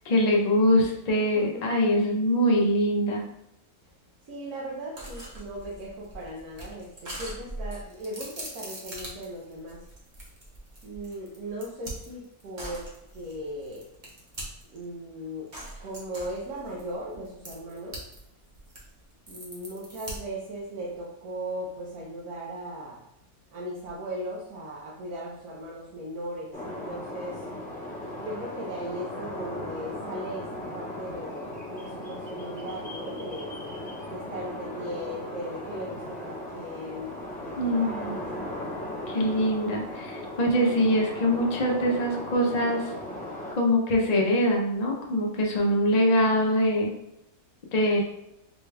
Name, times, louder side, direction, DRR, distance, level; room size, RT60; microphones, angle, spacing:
voice 1, 0.1-3.2 37.6-38.2 39.1-42.8 43.6-46.9 47.7-48.0, equal, 55° left, 0 dB, 0.4 m, -23 dB
voice 2, 4.2-9.8 10.8-13.8 14.7-15.5 15.8-18.0 19.3-23.0 23.5-27.4 28.2-33.6 34.1-38.5, right 1 dB, 85° right, -5 dB, 1.2 m, -38 dB
sound 1, 5.0-14.8 15.5-18.2 18.5-20.5, right 1 dB, 40° right, 0.9 m, -41 dB
sound 2, 26.5-43.5, left 1 dB, 10° left, 0.6 m, -37 dB
4.2 x 2.3 x 3.2 m, 0.83 s
omnidirectional pair, 1.6 m